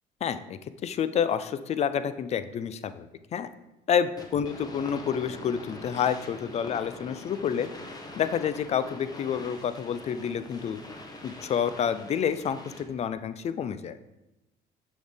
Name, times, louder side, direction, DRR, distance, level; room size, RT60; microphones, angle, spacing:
voice 1, 0.2-3.1 3.3-3.5 3.9-7.7 8.2-10.8 11.2-14.0, left 8 dB, 40° left, 12 dB, 0.4 m, -29 dB
sound 1, 4.2-13.1, left 2 dB, 25° left, 0.9 m, -44 dB
6.2 x 5.1 x 3.5 m, 0.98 s
cardioid pair, 110°, 17 cm